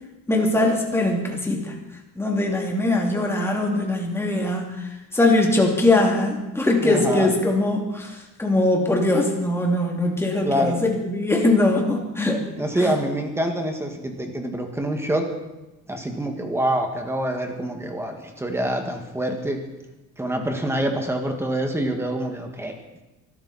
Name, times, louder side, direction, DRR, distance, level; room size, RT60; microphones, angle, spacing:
voice 1, 0.3-1.7 2.2-12.4 12.8-13.0, left 2 dB, 5° left, 0 dB, 2.6 m, -21 dB
voice 2, 6.8-7.3 10.4-10.8 12.6-15.3 15.9-19.6 20.2-22.7, right 1 dB, 10° right, 4 dB, 1.9 m, -26 dB
23.0 x 12.5 x 4.2 m, 1.0 s
cardioid pair, 165°, 33 cm